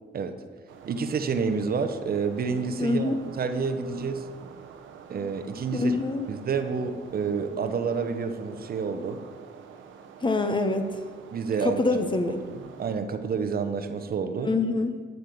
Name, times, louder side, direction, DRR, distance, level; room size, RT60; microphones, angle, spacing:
sound 1, 0.7-13.0, right 7 dB, 80° right, 1.1 m, -47 dB
voice 1, 0.8-4.2 5.1-5.9 6.3-9.2 11.3-11.8 12.4-14.5, right 5 dB, 50° right, 8 dB, 0.9 m, -29 dB
voice 2, 2.8-3.2 5.7-6.3 10.2-10.9 11.6-12.4 14.5-15.0, left 3 dB, 25° left, 7 dB, 0.9 m, -25 dB
12.0 x 6.7 x 5.4 m, 1.5 s
cardioid pair, 90°, 20 cm